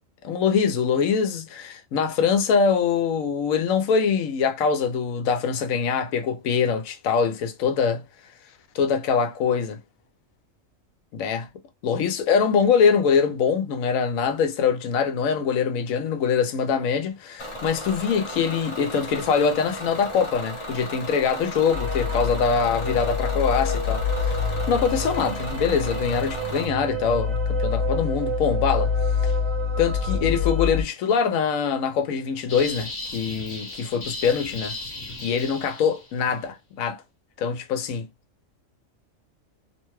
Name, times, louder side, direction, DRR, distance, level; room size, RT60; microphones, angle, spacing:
voice 1, 0.2-8.0 8.7-9.8 11.1-11.5 11.8-28.9 29.2-29.3 29.8-34.7 35.2-37.0 37.4-38.1, left 6 dB, 85° left, 1.0 m, -23 dB
Bus / Engine, 17.4-26.7, equal, 30° left, 0.6 m, -35 dB
sound 1, 21.7-30.8, left 4 dB, 60° right, 1.1 m, -26 dB
sound 2, 32.5-36.2, left 2 dB, 55° left, 1.2 m, -36 dB
2.8 x 2.2 x 3.0 m
omnidirectional pair, 1.4 m